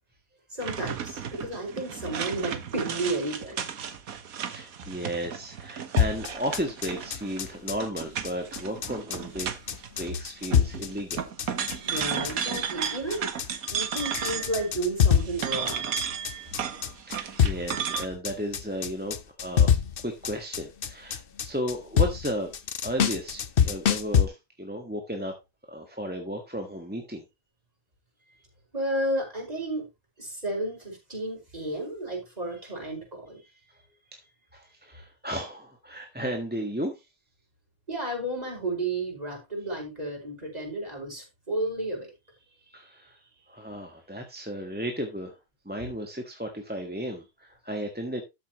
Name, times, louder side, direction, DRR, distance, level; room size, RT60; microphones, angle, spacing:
voice 1, 0.5-3.6 11.8-13.3 13.7-15.9 28.7-29.8 30.2-33.4 37.9-42.1, right 1 dB, 30° right, -1 dB, 5.4 m, -32 dB
sound 1, 0.6-10.1 10.4-14.7 15.1-18.1, right 8 dB, 85° right, 1.5 m, -34 dB
voice 2, 4.2-9.5 9.9-11.3 17.0-19.7 20.0-25.3 25.7-27.2 28.3-28.4 33.5-33.9 34.1-37.1 42.6-45.4 45.6-48.2, equal, 5° right, 3 dB, 1.4 m, -34 dB
sound 2, 6.0-24.2, left 8 dB, 45° left, 0.9 m, -26 dB
13.0 x 7.6 x 3.0 m, 0.23 s
omnidirectional pair, 1.5 m